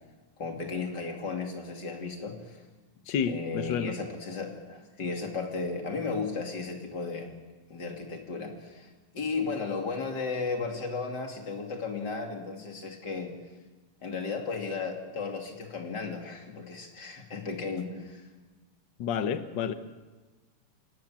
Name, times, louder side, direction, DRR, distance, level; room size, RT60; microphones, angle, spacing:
voice 1, 0.4-2.6 3.3-7.3 7.7-8.9 9.1-13.3 14.0-18.2, left 4 dB, 35° left, 3 dB, 3.1 m, -34 dB
voice 2, 3.1-3.9 19.0-19.7, left 7 dB, 80° left, 10 dB, 1.0 m, -30 dB
28.0 x 17.5 x 7.4 m, 1.3 s
omnidirectional pair, 3.4 m